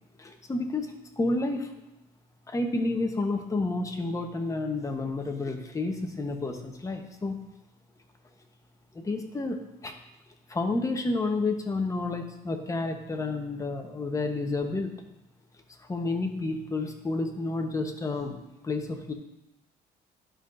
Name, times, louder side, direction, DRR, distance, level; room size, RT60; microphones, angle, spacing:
voice 1, 0.2-1.7 2.5-7.5 8.9-9.9 10.5-15.0 15.8-19.1, left 2 dB, 20° left, 4 dB, 1.0 m, -30 dB
11.5 x 5.7 x 2.6 m, 0.92 s
cardioid pair, 110°, 17 cm